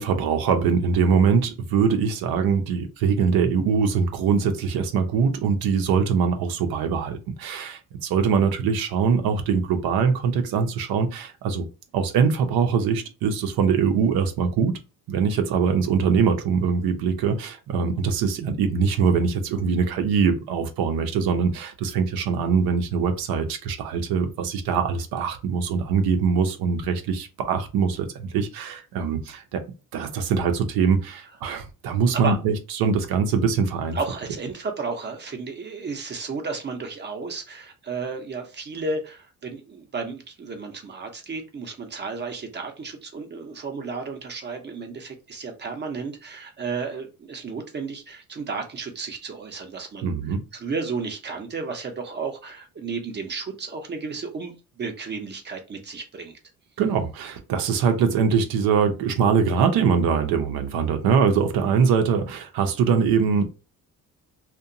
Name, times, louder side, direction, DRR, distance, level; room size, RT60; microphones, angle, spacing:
voice 1, 0.0-11.7 11.9-14.8 15.1-29.6 29.9-34.0 50.0-50.4 56.8-63.5, right 6 dB, 90° right, 0.6 m, -22 dB
voice 2, 33.9-50.1 50.5-56.4, right 4 dB, 30° right, 0.5 m, -33 dB
2.8 x 2.2 x 2.5 m
cardioid pair, 145°, 35 cm